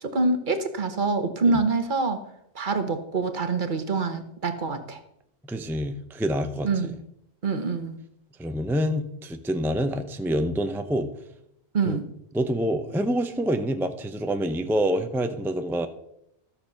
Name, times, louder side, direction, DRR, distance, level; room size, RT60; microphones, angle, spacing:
voice 1, 0.0-2.2 2.5-5.0 6.6-7.0 7.4-8.0 11.7-12.0, right 3 dB, 50° right, 9 dB, 1.2 m, -25 dB
voice 2, 5.5-6.9 8.4-11.1 11.9-12.0 12.3-15.9, equal, 5° right, 8 dB, 0.6 m, -27 dB
13.5 x 6.8 x 5.7 m, 0.76 s
omnidirectional pair, 1.1 m